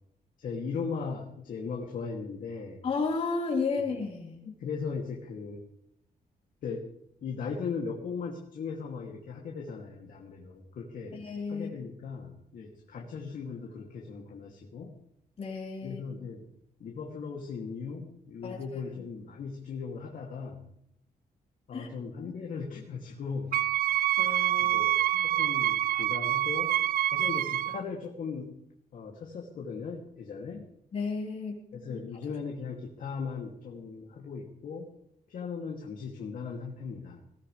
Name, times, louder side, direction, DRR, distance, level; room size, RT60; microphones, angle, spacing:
voice 1, 0.4-2.9 3.7-3.8 4.4-5.6 6.6-6.9 7.2-11.2 11.5-14.9 15.8-16.4 16.8-20.6 21.7-23.6 24.6-26.7 27.1-28.5 28.9-30.6 31.7-34.9 35.3-37.2, left 5 dB, 65° left, -1 dB, 2.7 m, -38 dB
voice 2, 2.8-4.4 11.2-11.7 15.4-16.0 18.4-18.6 21.7-21.9 24.2-24.8 25.1-25.3 27.2-27.3 30.9-31.6, left 4 dB, 45° left, -3 dB, 4.6 m, -32 dB
Wind instrument woodwind instrument, 23.5-27.8, right 13 dB, 80° right, 0.5 m, -26 dB
20.5 x 17.5 x 3.4 m, 0.74 s
wide cardioid pair, 175°, 15 cm